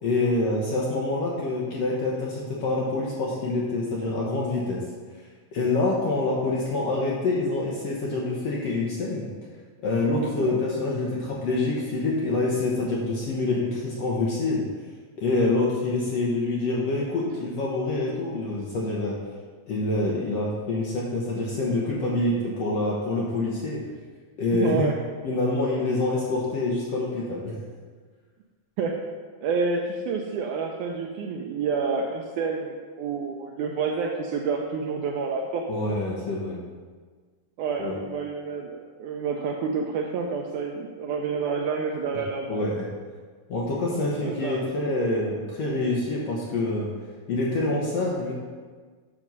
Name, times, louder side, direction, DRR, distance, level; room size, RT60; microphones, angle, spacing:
voice 1, 0.0-4.8 5.5-9.3 9.8-14.6 15.2-19.1 19.7-23.8 24.4-24.9 25.2-27.5 35.7-36.6 37.8-37.9 42.5-42.8 43.5-46.9 47.3-48.3, left 2 dB, 70° left, -4 dB, 1.6 m, -26 dB
voice 2, 24.5-25.0 28.8-29.0 29.4-35.7 37.6-42.6 44.2-44.7, right 5 dB, 85° right, 1 dB, 1.8 m, -29 dB
7.6 x 6.0 x 5.4 m, 1.5 s
omnidirectional pair, 4.2 m